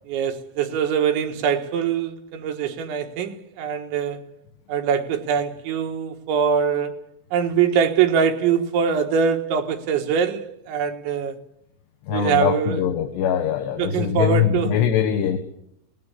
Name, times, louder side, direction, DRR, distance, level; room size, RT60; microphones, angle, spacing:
voice 1, 0.1-4.2 4.7-7.0 7.3-11.4 12.1-12.8 13.8-14.7, right 7 dB, 75° right, 3.9 m, -23 dB
voice 2, 12.1-15.4, left 9 dB, 70° left, 3.6 m, -22 dB
23.0 x 19.0 x 8.3 m
omnidirectional pair, 5.4 m